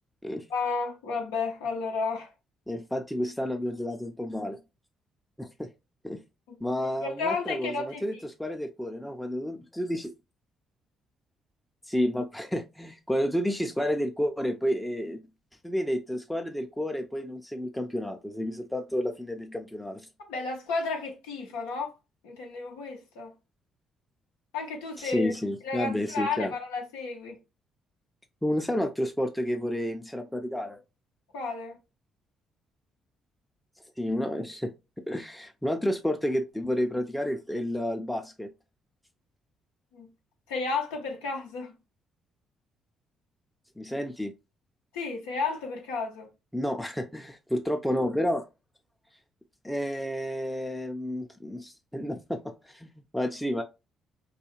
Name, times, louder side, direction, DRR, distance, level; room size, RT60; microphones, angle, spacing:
voice 1, 0.5-2.3 6.5-8.2 20.3-21.9 22.2-23.3 24.5-25.3 25.6-27.4 31.3-31.8 39.9-40.1 40.5-41.7 44.9-46.3, left 4 dB, 85° left, 0.5 m, -32 dB
voice 2, 2.7-4.6 5.4-5.7 6.0-6.2 6.6-10.1 11.9-15.2 15.6-20.1 25.0-26.5 28.4-30.8 34.0-34.7 35.1-38.5 43.8-44.3 46.5-48.4 49.6-53.6, equal, 5° left, 0.4 m, -30 dB
2.3 x 2.3 x 2.9 m
hypercardioid pair, 50°, 0 cm